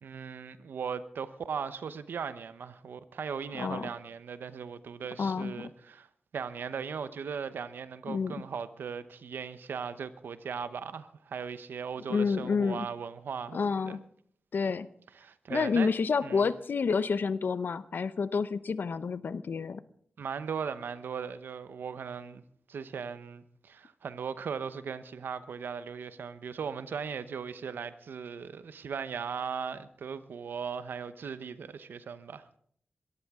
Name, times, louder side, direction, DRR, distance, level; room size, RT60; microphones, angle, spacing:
voice 1, 0.0-6.1 6.3-14.0 15.1-15.9 16.2-16.5 20.2-22.4 22.7-32.5, right 6 dB, 90° right, 0.9 m, -38 dB
voice 2, 3.6-3.9 5.2-5.7 8.1-8.3 12.1-12.9 13.5-14.0 14.5-14.9 15.5-19.8, left 5 dB, 70° left, 0.7 m, -29 dB
22.0 x 14.0 x 3.7 m
cardioid pair, 55°, 3 cm